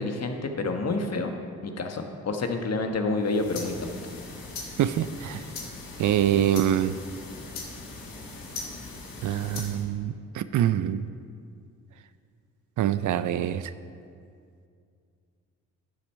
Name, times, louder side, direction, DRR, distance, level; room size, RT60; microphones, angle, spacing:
voice 1, 0.0-1.3 1.6-3.9, left 3 dB, 50° left, 4 dB, 1.3 m, -28 dB
sound 1, 3.2-9.9, left 3 dB, 80° left, 1.8 m, -40 dB
voice 2, 4.8-5.5 6.0-7.0 9.2-11.0 12.8-13.7, right 11 dB, 60° right, 13 dB, 0.5 m, -25 dB
12.0 x 7.2 x 4.6 m, 2.3 s
supercardioid pair, 50°, 34 cm